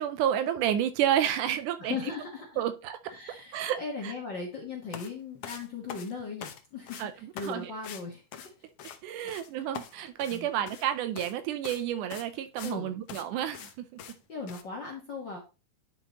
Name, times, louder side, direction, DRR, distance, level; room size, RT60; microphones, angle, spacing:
voice 1, 0.0-2.0 2.6-3.0 3.5-4.1 7.0-7.7 9.0-13.9, right 10 dB, 80° right, 10 dB, 2.0 m, -30 dB
voice 2, 1.8-2.6 3.1-8.7 9.1-9.3 10.3-10.5 12.6-13.0 14.3-15.4, left 4 dB, 50° left, -1 dB, 1.4 m, -38 dB
sound 1, 4.9-5.1 5.4-6.6 6.9-7.1 7.4-7.5 7.8-8.0 8.3-9.0 9.3-9.5 9.7-10.9 11.2-11.3 11.6-11.8 12.1-12.8 13.1-13.2 13.5-13.7 14.0-14.2 14.5-14.6, left 9 dB, 80° left, 1.3 m, -43 dB
10.0 x 4.9 x 3.0 m, 0.30 s
omnidirectional pair, 3.8 m